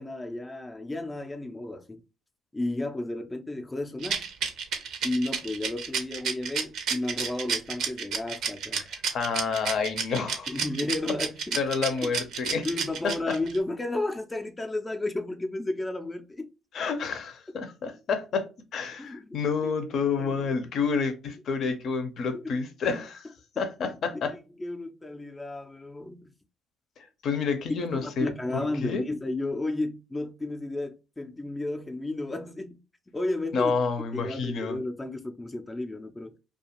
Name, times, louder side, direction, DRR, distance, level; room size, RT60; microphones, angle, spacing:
voice 1, 0.0-2.0 2.5-4.2 5.0-8.8 10.5-11.6 12.0-12.1 12.6-16.5 19.0-19.2 19.6-19.7 20.2-20.6 22.2-22.5 23.8-26.3 27.9-32.8 33.1-33.7 34.1-36.3, left 2 dB, 20° left, 0.4 m, -33 dB
Rattle, 4.0-13.6, right 6 dB, 70° right, 0.5 m, -30 dB
voice 2, 8.8-10.5 11.5-12.7 13.0-13.4 16.7-23.3 23.6-24.3 27.0-28.3 28.8-29.0 33.5-34.8, left 5 dB, 60° left, 0.6 m, -29 dB
2.4 x 2.3 x 2.9 m
supercardioid pair, 65°, 0 cm